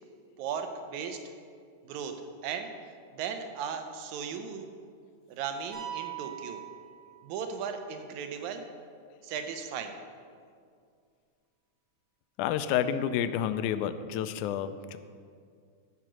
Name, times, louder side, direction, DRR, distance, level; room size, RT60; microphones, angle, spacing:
voice 1, 0.4-1.2 1.8-2.8 3.1-4.7 5.3-6.6 7.2-8.7 9.2-10.0, right 6 dB, 75° right, 6 dB, 2.0 m, -36 dB
sound 1, 5.7-7.6, right 12 dB, 90° right, 4.4 m, -41 dB
voice 2, 12.4-15.0, left 9 dB, 80° left, 11 dB, 1.8 m, -29 dB
14.0 x 5.1 x 6.2 m, 2.2 s
omnidirectional pair, 3.8 m